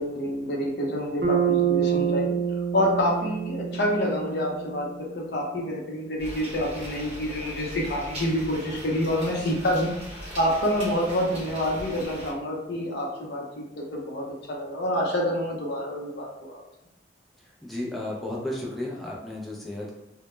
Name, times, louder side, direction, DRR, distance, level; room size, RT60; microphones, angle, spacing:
voice 1, 0.0-2.3 2.7-9.9 10.2-16.6, equal, 65° left, -2 dB, 0.6 m, -27 dB
Bass guitar, 1.2-5.3, right 8 dB, 65° right, 0.6 m, -27 dB
sound 1, 6.2-12.3, equal, 35° right, 0.8 m, -40 dB
voice 2, 9.3-9.6 17.4-19.9, left 1 dB, ahead, -5 dB, 0.3 m, -34 dB
2.1 x 2.0 x 3.0 m, 0.89 s
head